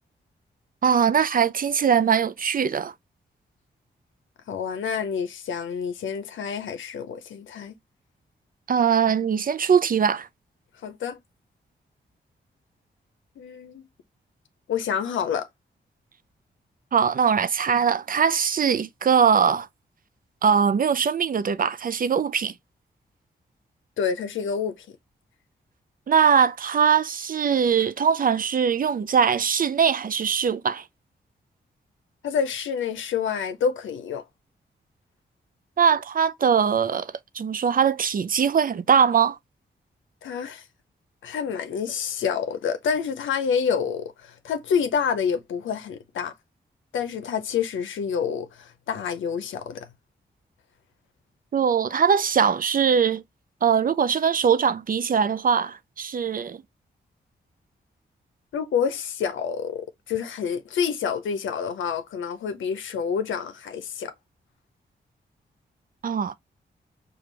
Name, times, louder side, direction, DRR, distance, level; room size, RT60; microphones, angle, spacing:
voice 1, 0.8-2.9 8.7-10.3 16.9-19.7 20.4-22.5 26.1-30.8 35.8-39.4 51.5-53.2 53.6-56.6 66.0-66.3, right 7 dB, 45° right, 0.5 m, -21 dB
voice 2, 4.5-7.7 10.8-11.2 13.4-13.8 14.7-15.5 24.0-24.9 32.2-34.2 40.2-40.6 41.2-46.3 46.9-49.9 58.5-64.1, left 7 dB, 85° left, 0.6 m, -28 dB
5.0 x 2.4 x 3.2 m
cardioid pair, 55°, 20 cm